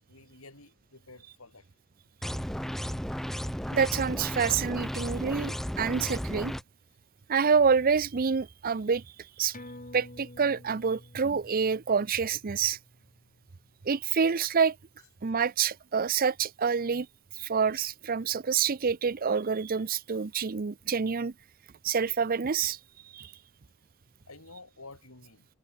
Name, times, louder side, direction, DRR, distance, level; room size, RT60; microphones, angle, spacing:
voice 1, 0.1-1.6 3.5-3.6 4.4-4.5 24.3-25.5, left 3 dB, 85° left, 5.3 m, -51 dB
sound 1, 2.2-6.6, equal, ahead, 0.6 m, -34 dB
voice 2, 3.7-6.5 7.3-9.0 9.4-9.5 9.9-12.8 13.9-14.8 15.2-17.1 17.4-21.3 21.8-22.8 23.1-23.3, right 6 dB, 45° right, 0.6 m, -27 dB
sound 2, 9.5-14.5 14.8-14.9, left 1 dB, 40° left, 4.9 m, -50 dB
head